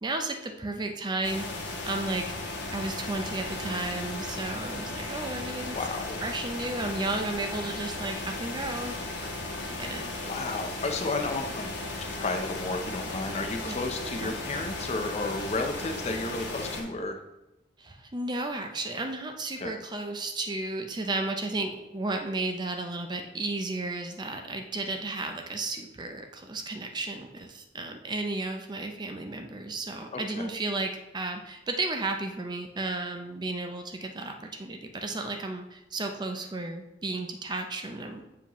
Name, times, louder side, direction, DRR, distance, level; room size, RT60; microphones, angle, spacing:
voice 1, 0.0-2.4 2.7-5.8 6.2-9.2 9.7-10.1 13.6-13.8 14.2-14.4 17.8-38.2, right 2 dB, 25° right, 5 dB, 0.5 m, -33 dB
sound 1, 1.2-16.8, left 2 dB, 70° left, 1.3 m, -36 dB
voice 2, 5.7-6.2 10.2-17.2 19.6-19.7 30.1-30.5, left 3 dB, 35° left, 5 dB, 0.6 m, -33 dB
7.1 x 4.7 x 3.0 m, 0.94 s
head